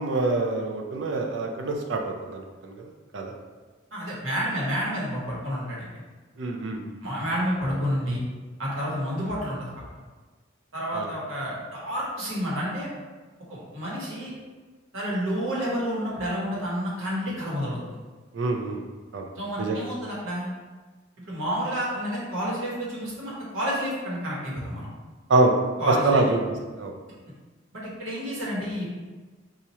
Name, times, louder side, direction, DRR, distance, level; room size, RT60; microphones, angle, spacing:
voice 1, 0.0-3.3 6.4-7.0 10.9-11.1 18.3-18.8 19.1-19.3 19.6-19.8 25.3-25.6 25.9-26.4 26.8-26.9, right 2 dB, 65° right, 2 dB, 0.4 m, -25 dB
voice 2, 3.9-6.0 7.0-8.2 8.6-9.7 10.7-12.9 13.5-14.3 14.9-17.9 19.3-20.5 21.2-24.9 25.8-26.3 27.7-28.8, equal, 85° right, -6 dB, 1.2 m, -29 dB
2.9 x 2.5 x 4.1 m, 1.4 s
head